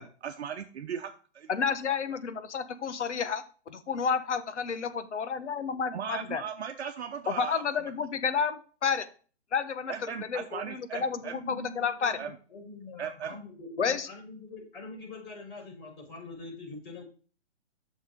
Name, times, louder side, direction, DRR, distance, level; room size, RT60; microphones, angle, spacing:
voice 1, 0.2-1.7 5.9-7.9 9.9-11.4 12.1-12.4 13.0-13.3, right 7 dB, 65° right, 5 dB, 0.9 m, -38 dB
voice 2, 1.5-6.4 7.3-9.1 9.5-12.2 13.8-14.1, left 6 dB, 80° left, 12 dB, 1.3 m, -31 dB
voice 3, 10.9-17.0, left 3 dB, 45° left, 0 dB, 4.6 m, -44 dB
8.0 x 6.4 x 3.6 m, 0.38 s
hypercardioid pair, 155°, 35 cm